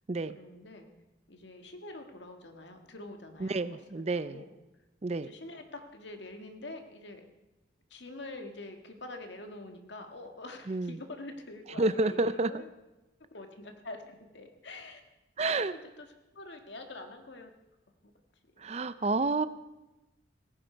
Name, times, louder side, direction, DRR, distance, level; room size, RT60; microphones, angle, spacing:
voice 1, 0.3-0.9 1.3-3.6 3.9-4.5 5.1-7.3 7.9-12.7 13.2-15.0 15.4-16.1 16.3-17.5 18.0-18.1 19.1-19.3, left 2 dB, 75° left, 5 dB, 1.8 m, -45 dB
voice 2, 3.4-4.4 5.0-5.3 10.7-11.0 11.8-12.6 15.4-15.7 18.6-19.5, right 3 dB, 35° right, 15 dB, 0.5 m, -29 dB
17.5 x 15.0 x 4.6 m, 1.0 s
head